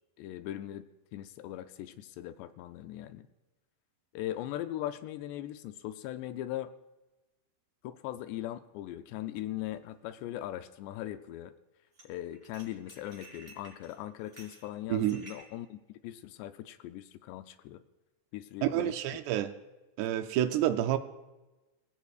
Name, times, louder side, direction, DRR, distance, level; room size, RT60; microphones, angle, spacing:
voice 1, 0.2-3.3 4.1-6.7 7.8-11.5 12.0-17.8 18.3-19.0, left 13 dB, 80° left, 9 dB, 2.6 m, -40 dB
sound 1, 9.8-9.9 11.9-12.0 12.3-15.5, right 2 dB, 15° right, 3.2 m, -53 dB
voice 2, 14.9-15.2 18.6-19.5 20.0-21.0, right 12 dB, 80° right, 9 dB, 2.6 m, -28 dB
24.0 x 16.5 x 2.4 m, 1.1 s
omnidirectional pair, 5.2 m